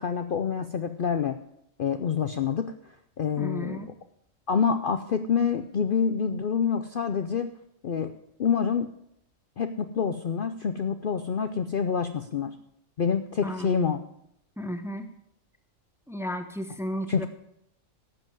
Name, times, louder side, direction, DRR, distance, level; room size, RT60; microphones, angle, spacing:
voice 1, 0.0-1.4 1.8-2.7 3.2-3.8 4.5-7.5 7.8-8.1 8.4-8.9 9.6-12.5 13.0-14.0 17.1-17.3, left 6 dB, 50° left, 8 dB, 0.7 m, -27 dB
voice 2, 3.4-3.9 13.4-14.0 14.6-15.1 16.1-17.3, equal, ahead, 7 dB, 0.9 m, -34 dB
13.0 x 7.7 x 7.9 m, 0.74 s
omnidirectional pair, 1.4 m